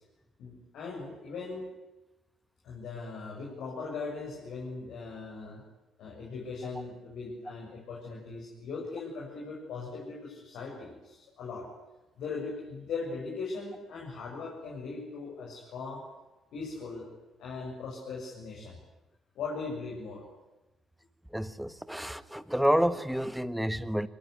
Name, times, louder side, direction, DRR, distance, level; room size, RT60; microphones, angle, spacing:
voice 1, 0.4-1.7 2.6-5.6 6.0-11.7 12.2-16.0 16.5-17.1 17.4-18.8 19.4-20.2, left 4 dB, 65° left, -3 dB, 7.1 m, -39 dB
voice 2, 21.3-24.1, equal, 5° right, 14 dB, 1.5 m, -29 dB
25.5 x 21.5 x 9.8 m, 1.0 s
hypercardioid pair, 50°, 0 cm